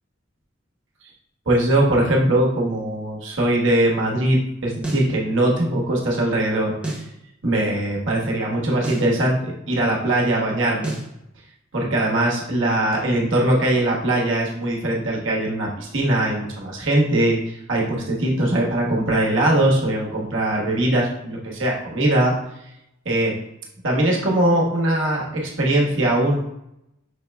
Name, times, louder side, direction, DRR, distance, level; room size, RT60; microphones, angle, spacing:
voice 1, 1.5-7.0 7.4-11.0 11.7-22.3 23.0-23.3 23.8-26.3, right 1 dB, 80° right, -3 dB, 1.2 m, -21 dB
sound 1, 4.8-5.1 6.8-7.1 8.8-9.1 10.8-11.1, right 2 dB, 5° right, 0.9 m, -29 dB
5.8 x 2.1 x 3.4 m, 0.83 s
head